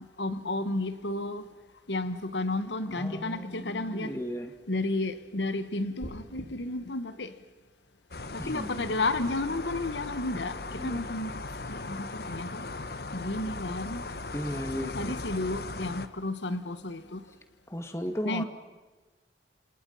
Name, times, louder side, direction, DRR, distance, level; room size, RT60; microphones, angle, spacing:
voice 1, 0.2-1.4 1.9-4.1 4.7-7.3 8.3-12.6 13.1-14.0 14.8-17.2 18.2-18.4, left 2 dB, 90° left, 1.5 m, -32 dB
voice 2, 2.9-4.5 8.4-9.0 10.8-11.0 14.3-15.2 17.7-18.4, equal, 15° left, 2.2 m, -35 dB
sound 1, 6.0-6.5, equal, 40° left, 3.4 m, -41 dB
sound 2, 8.1-16.1, left 3 dB, 60° left, 1.2 m, -38 dB
28.5 x 27.5 x 5.7 m
head